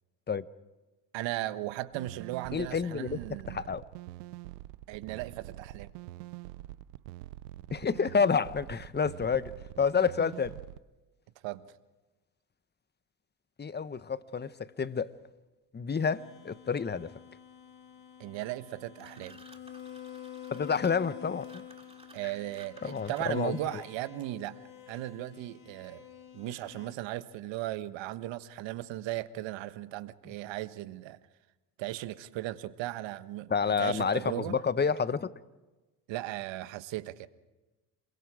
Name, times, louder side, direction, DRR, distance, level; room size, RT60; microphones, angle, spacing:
voice 1, 1.1-3.6 4.9-5.9 11.4-11.7 18.2-19.4 22.1-24.6 24.9-26.0 26.3-31.2 31.8-34.6 36.1-37.3, right 15 dB, 65° right, 1.4 m, -37 dB
sound 1, 1.9-10.8, right 16 dB, 90° right, 0.7 m, -45 dB
voice 2, 2.5-3.8 7.7-9.5 9.8-10.6 13.6-15.1 15.7-17.1 20.5-21.6 22.2-22.3 22.8-23.8 33.5-35.3, left 6 dB, 20° left, 1.0 m, -29 dB
sound 2, 16.0-27.0, left 10 dB, 80° left, 5.1 m, -48 dB
sound 3, 18.9-23.5, right 2 dB, 10° right, 2.6 m, -56 dB
28.0 x 22.5 x 5.0 m
hypercardioid pair, 70°, 48 cm